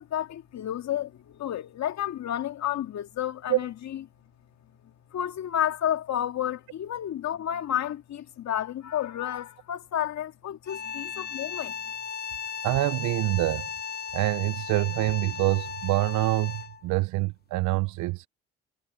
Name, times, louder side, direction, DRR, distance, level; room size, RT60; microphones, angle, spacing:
voice 1, 0.0-4.0 5.1-11.7, left 11 dB, 60° left, 2.2 m, -31 dB
sound 1, 10.6-16.9, left 7 dB, 30° left, 0.6 m, -36 dB
voice 2, 12.6-13.7 14.1-18.3, right 19 dB, 70° right, 0.9 m, -26 dB
hypercardioid pair, 45°, 31 cm